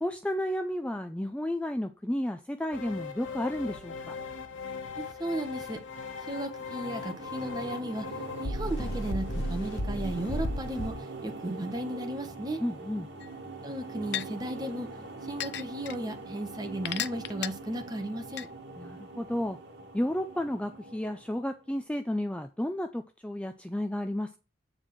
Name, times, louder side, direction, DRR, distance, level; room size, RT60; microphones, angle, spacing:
voice 1, 0.0-4.1 12.6-13.1 18.8-19.6 19.9-24.4, left 1 dB, 5° left, 0.4 m, -32 dB
sound 1, 2.7-10.9, left 2 dB, 90° left, 1.4 m, -36 dB
voice 2, 5.0-5.8 6.3-8.1 8.4-10.9 11.2-12.6 13.6-14.9 15.3-18.5, right 1 dB, 20° right, 1.3 m, -35 dB
sound 2, 6.4-21.7, right 3 dB, 65° right, 1.9 m, -43 dB
sound 3, 13.2-13.3 14.1-14.3 15.4-16.0 16.9-17.5 18.4-18.5, left 11 dB, 60° left, 0.5 m, -32 dB
8.7 x 4.5 x 6.1 m
head